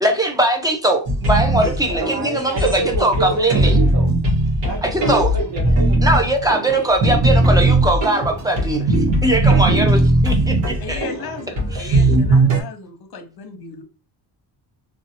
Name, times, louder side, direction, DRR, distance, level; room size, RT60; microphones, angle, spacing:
voice 1, 0.0-3.8 4.8-5.3 6.0-11.0 11.7-12.1, right 1 dB, 10° right, 3 dB, 0.6 m, -20 dB
sound 1, 1.1-12.6, right 2 dB, 80° right, 1.6 m, -18 dB
voice 2, 1.8-4.1 4.6-6.2, right 1 dB, 50° right, 0 dB, 1.4 m, -28 dB
voice 3, 10.8-13.8, left 5 dB, 55° left, 7 dB, 0.9 m, -35 dB
3.2 x 2.8 x 2.7 m, 0.33 s
wide cardioid pair, 145°, 45 cm